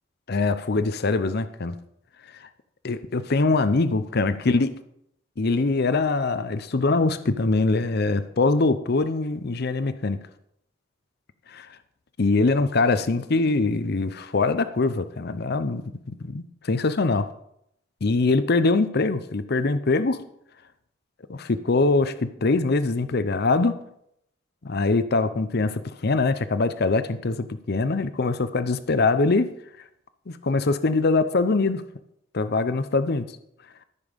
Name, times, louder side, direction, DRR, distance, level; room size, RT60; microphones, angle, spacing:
voice 1, 0.3-1.7 2.8-4.7 5.4-10.2 11.5-11.7 12.2-17.3 18.0-20.2 21.3-23.8 24.6-29.5 30.3-31.8 32.3-33.3, left 3 dB, 55° left, 12 dB, 0.7 m, -23 dB
13.5 x 6.9 x 5.3 m, 0.73 s
head